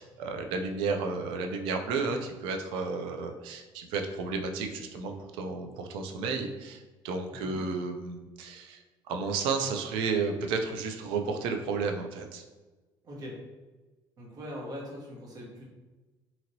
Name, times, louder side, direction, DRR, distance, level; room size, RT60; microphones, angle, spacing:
voice 1, 0.0-8.8 9.1-12.4, right 4 dB, 90° right, 4 dB, 0.4 m, -32 dB
voice 2, 13.0-13.4 14.2-15.7, equal, 45° right, -2 dB, 0.9 m, -41 dB
2.9 x 2.8 x 2.6 m, 1.2 s
cardioid pair, 110°, 9 cm